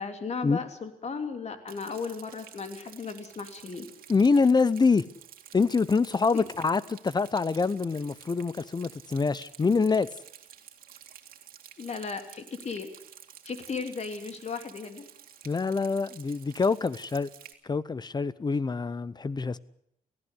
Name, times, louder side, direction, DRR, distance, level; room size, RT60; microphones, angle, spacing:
voice 1, 0.0-3.9 6.3-6.4 11.8-12.9 13.4-15.0, left 5 dB, 50° left, 3.0 m, -36 dB
Rain, 1.7-17.5, right 10 dB, 85° right, 2.2 m, -51 dB
voice 2, 4.1-5.0 5.5-10.1 15.4-17.3 17.6-19.6, left 4 dB, 30° left, 0.8 m, -25 dB
18.0 x 15.5 x 9.6 m
cardioid pair, 90°, 15 cm